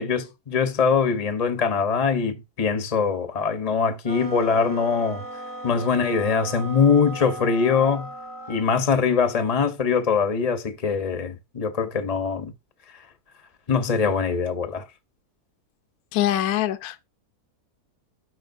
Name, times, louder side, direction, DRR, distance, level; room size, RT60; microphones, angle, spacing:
voice 1, 0.0-5.2 5.6-8.1 8.5-12.5 13.7-14.8, left 5 dB, 30° left, 0.7 m, -22 dB
sound 1, 4.0-8.7, right 1 dB, 20° right, 0.5 m, -37 dB
voice 2, 16.1-17.0, left 12 dB, 70° left, 1.1 m, -24 dB
12.5 x 4.8 x 2.6 m
omnidirectional pair, 1.7 m